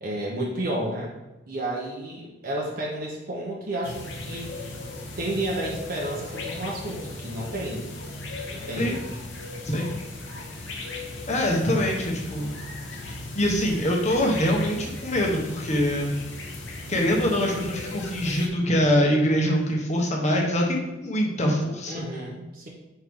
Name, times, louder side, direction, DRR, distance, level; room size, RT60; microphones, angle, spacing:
voice 1, 0.0-1.1 1.5-4.5 5.2-7.8 8.3-9.1 21.9-22.7, right 1 dB, 55° right, -3 dB, 0.9 m, -31 dB
sound 1, 3.8-18.5, left 2 dB, 75° left, 1.1 m, -37 dB
voice 2, 11.3-12.6 13.0-16.1 16.9-22.0, equal, 40° left, 0 dB, 1.2 m, -24 dB
5.7 x 4.7 x 3.6 m, 1.0 s
head